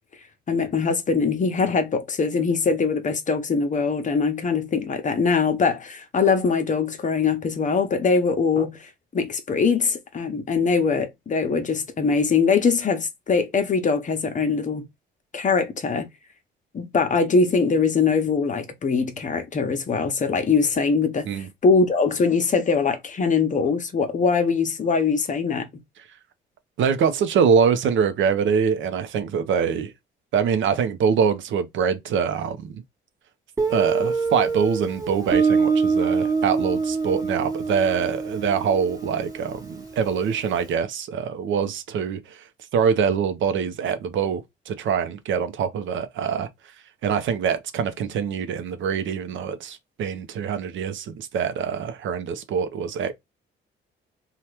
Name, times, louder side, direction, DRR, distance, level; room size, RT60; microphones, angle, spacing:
voice 1, 0.5-14.8 15.3-16.1 16.7-25.7, left 5 dB, 40° left, 0.8 m, -22 dB
voice 2, 26.8-29.9 30.3-32.8 33.7-42.4 42.7-46.5 47.0-53.1, right 6 dB, 75° right, 0.7 m, -24 dB
Guitar, 33.6-40.2, right 5 dB, 15° right, 1.2 m, -25 dB
2.9 x 2.4 x 3.2 m
cardioid pair, 90°, 20 cm